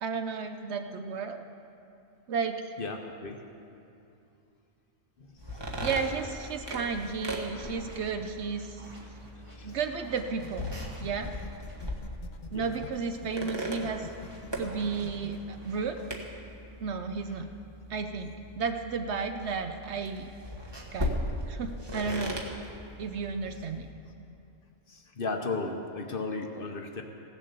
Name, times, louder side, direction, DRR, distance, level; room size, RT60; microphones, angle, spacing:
voice 1, 0.0-1.4 2.3-2.7 5.8-8.8 9.6-10.7 11.0-11.3 12.5-14.1 14.6-16.0 16.8-17.5 17.9-20.3 20.9-21.1 21.5-22.5 23.0-23.9, right 5 dB, 65° right, 7 dB, 0.9 m, -33 dB
voice 2, 2.8-3.4 5.2-5.3 9.5-9.8 12.5-12.7 24.9-27.0, left 3 dB, 50° left, 4 dB, 0.9 m, -35 dB
sound 1, 5.4-23.9, equal, 20° right, 1.2 m, -39 dB
sound 2, 6.7-11.9 13.3-15.8, right 1 dB, 45° right, 2.7 m, -53 dB
sound 3, 10.3-15.4, left 7 dB, 80° left, 0.4 m, -47 dB
16.0 x 7.4 x 6.7 m, 2.7 s
omnidirectional pair, 1.4 m